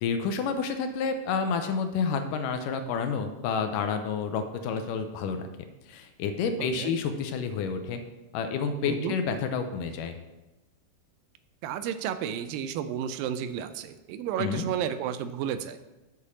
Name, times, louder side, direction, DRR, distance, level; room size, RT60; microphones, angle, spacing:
voice 1, 0.0-5.5 5.9-8.0 8.3-10.2 14.4-14.7, left 5 dB, 80° left, 7 dB, 2.2 m, -29 dB
voice 2, 6.6-6.9 8.8-9.2 11.6-15.8, right 9 dB, 85° right, 11 dB, 2.3 m, -32 dB
7.0 x 6.7 x 6.1 m, 1.0 s
omnidirectional pair, 4.0 m